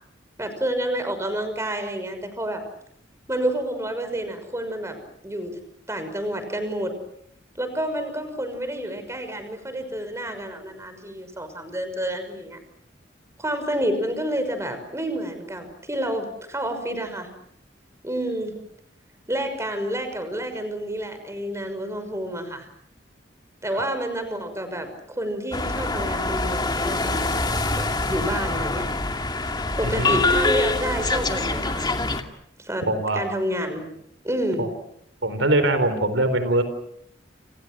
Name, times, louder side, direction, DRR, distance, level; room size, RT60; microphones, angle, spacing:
voice 1, 0.4-2.6 3.3-5.0 5.2-5.5 5.9-6.9 7.6-12.6 13.4-17.3 18.0-18.5 19.3-22.7 23.6-27.3 27.7-28.9 29.7-31.9 32.6-32.8 33.1-33.9 34.2-34.7, right 1 dB, 15° right, 8 dB, 5.9 m, -29 dB
sound 1, 25.5-32.2, left 2 dB, 25° left, 2.4 m, -25 dB
voice 2, 29.8-30.2 32.9-33.2 34.6-34.7 35.2-36.6, right 2 dB, 90° right, 11 dB, 4.2 m, -22 dB
29.5 x 28.5 x 6.2 m, 0.73 s
head